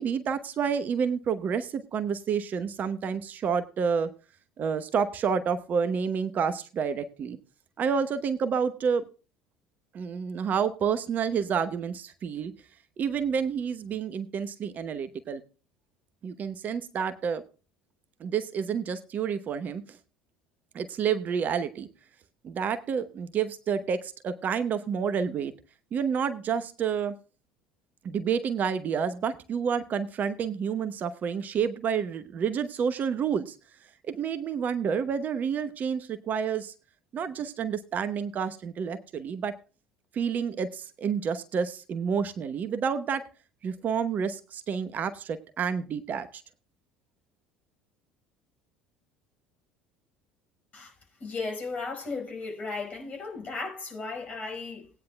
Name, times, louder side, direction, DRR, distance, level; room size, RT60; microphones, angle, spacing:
voice 1, 0.0-4.1 4.6-7.4 7.8-9.0 9.9-12.5 13.0-15.4 16.2-17.4 18.2-20.0 20.7-21.9 22.4-25.5 25.9-27.1 28.0-33.6 34.0-36.7 37.1-39.5 40.1-43.2 43.6-46.4, right 6 dB, 40° right, 0.9 m, -29 dB
voice 2, 51.2-54.9, left 3 dB, 30° left, 4.9 m, -35 dB
18.5 x 9.5 x 2.3 m
figure-of-eight pair, 65°, 4 cm